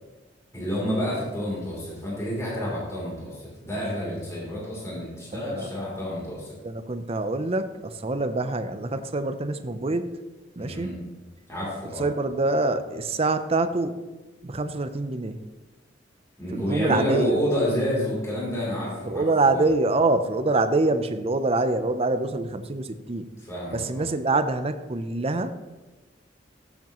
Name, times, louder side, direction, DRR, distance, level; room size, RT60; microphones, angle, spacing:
voice 1, 0.5-6.6 10.6-10.9 11.5-12.1 16.4-19.2 19.5-19.6 23.5-24.0, equal, 15° left, -6 dB, 3.3 m, -29 dB
voice 2, 6.6-10.1 10.6-10.9 12.0-13.9 14.4-15.4 16.5-17.4 19.0-23.3 23.7-25.5, right 2 dB, 35° right, 10 dB, 0.6 m, -25 dB
15.0 x 7.3 x 3.0 m, 1.2 s
head